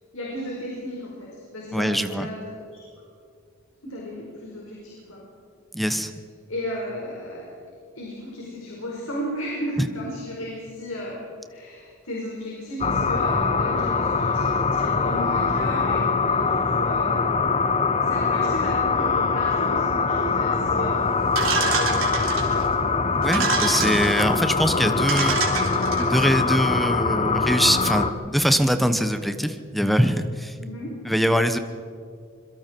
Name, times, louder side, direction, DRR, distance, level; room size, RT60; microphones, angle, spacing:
voice 1, 0.1-2.9 3.8-5.2 5.8-6.0 6.5-7.5 7.9-11.2 11.5-17.2 18.0-21.2 21.5-22.6 30.6-30.9, left 1 dB, 80° left, -4 dB, 5.0 m, -34 dB
voice 2, 1.7-2.3 5.7-6.1 9.8-9.9 23.2-25.4 25.9-30.6 31.0-31.6, equal, ahead, 9 dB, 1.0 m, -22 dB
sound 1, 12.8-28.1, left 4 dB, 30° left, 0.9 m, -23 dB
sound 2, 21.3-22.7 23.2-24.2 24.7-24.8 25.1-26.3, right 4 dB, 70° right, 3.7 m, -26 dB
26.5 x 22.5 x 4.6 m, 2.4 s
head